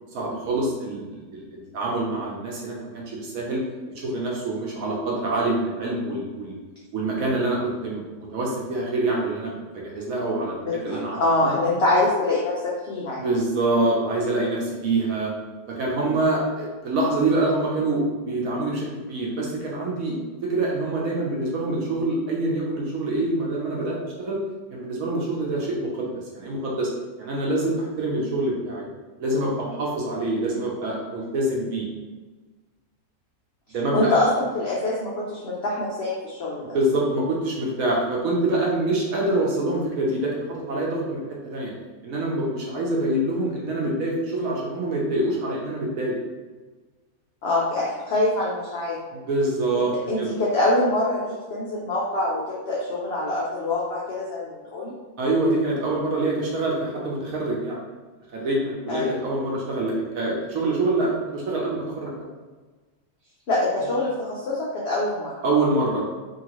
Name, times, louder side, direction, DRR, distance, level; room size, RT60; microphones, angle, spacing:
voice 1, 0.1-3.6 4.0-6.6 6.9-10.5 10.8-11.6 13.2-15.3 15.7-24.4 24.7-26.9 27.2-28.8 29.2-31.9 33.7-34.1 36.6-41.2 41.5-41.7 42.0-46.1 49.1-50.3 55.2-57.8 58.3-62.1 65.4-66.0, right 2 dB, 65° right, -3 dB, 1.0 m, -25 dB
voice 2, 10.6-13.3 33.9-36.7 47.4-49.0 50.1-54.9 58.9-59.1 63.5-65.3, left 2 dB, 80° left, -5 dB, 0.5 m, -24 dB
2.8 x 2.7 x 2.9 m, 1.3 s
omnidirectional pair, 1.8 m